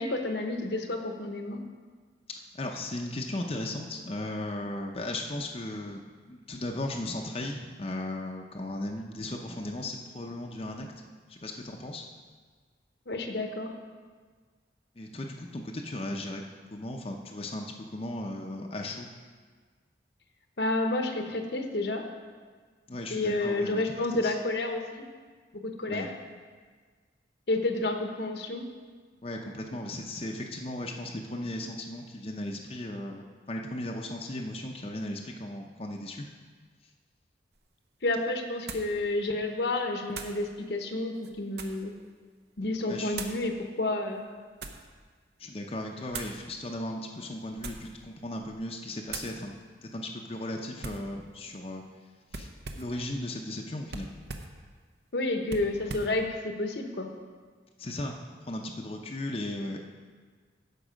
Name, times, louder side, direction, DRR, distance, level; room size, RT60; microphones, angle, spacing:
voice 1, 0.0-1.6 13.1-13.7 20.6-22.0 23.1-25.0 25.6-26.1 27.5-28.6 38.0-41.9 42.6-44.2 55.1-57.1, left 2 dB, 70° left, 5 dB, 0.9 m, -30 dB
voice 2, 2.6-10.9 11.3-12.1 15.0-16.5 16.7-19.1 22.9-23.8 24.1-24.4 25.9-26.1 29.2-36.3 42.8-43.2 45.4-49.5 49.8-51.8 52.3-52.5 52.7-54.1 57.8-58.2 58.4-59.8, left 1 dB, 30° left, 1 dB, 0.6 m, -36 dB
sound 1, 37.5-37.6 38.7-39.0 40.1-40.4 41.1-41.9 43.1-43.4 44.2-44.9 46.1-46.4 47.5-48.0 48.4-48.7 49.1-49.4 50.8-51.1 52.3-53.0 53.9-54.6 55.5-56.2, right 4 dB, 65° right, 0.8 m, -40 dB
13.5 x 5.4 x 5.1 m, 1.5 s
head